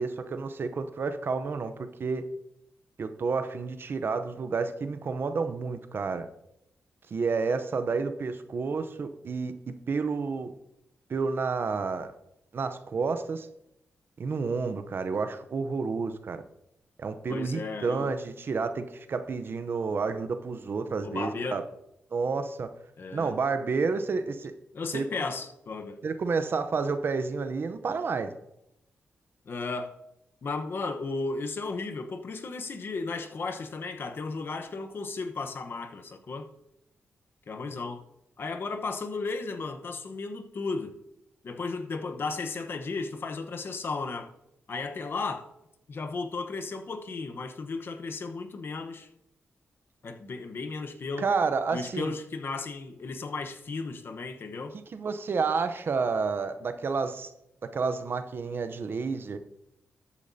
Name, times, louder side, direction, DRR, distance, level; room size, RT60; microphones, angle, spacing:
voice 1, 0.0-2.2 3.0-6.3 7.1-9.5 9.9-10.5 11.1-12.1 12.5-13.5 14.2-16.4 17.0-21.6 22.1-22.7 23.1-24.5 24.9-25.1 26.0-28.4 51.2-52.1 54.9-57.3 57.6-59.4, right 4 dB, 55° right, 0.7 m, -30 dB
voice 2, 17.3-18.2 21.0-21.6 23.0-23.4 24.7-26.0 29.4-29.9 30.4-36.5 37.5-38.0 38.4-40.9 41.4-44.3 44.7-45.5 45.9-49.1 50.0-51.3 51.7-54.8, left 3 dB, 60° left, 1.0 m, -34 dB
13.5 x 8.4 x 2.8 m
cardioid pair, 80°, 4 cm